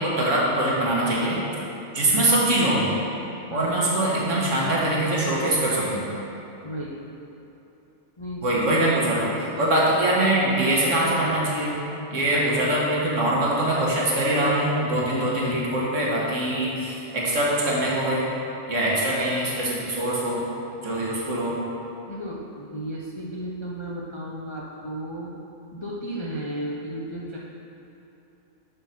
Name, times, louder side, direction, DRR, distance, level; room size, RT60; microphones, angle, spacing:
voice 1, 0.0-1.4 1.9-2.8 3.5-6.0 8.4-11.7 12.1-18.3 18.7-20.4 20.8-21.6, right 1 dB, 70° right, -5 dB, 1.6 m, -23 dB
voice 2, 2.0-2.5 3.5-3.9 4.2-4.6 6.6-7.2 8.2-9.7 12.3-12.8 22.1-25.4 25.7-27.4, right 1 dB, 40° left, -5 dB, 0.4 m, -35 dB
6.5 x 4.5 x 5.7 m, 2.9 s
omnidirectional pair, 1.3 m